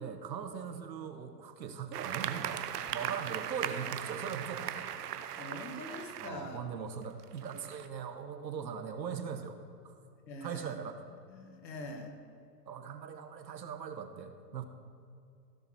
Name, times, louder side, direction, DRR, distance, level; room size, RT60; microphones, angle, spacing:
voice 1, 0.0-4.9 6.2-9.6 9.8-10.0 10.4-11.0 12.7-14.7, right 7 dB, 90° right, 8 dB, 1.3 m, -40 dB
sound 1, 1.9-6.3 7.0-7.9, right 10 dB, 65° right, 0.8 m, -38 dB
voice 2, 5.4-6.6 10.3-10.7 11.3-12.1, left 1 dB, 75° left, 4 dB, 2.2 m, -43 dB
15.5 x 6.7 x 4.6 m, 2.5 s
hypercardioid pair, 130°, 50 cm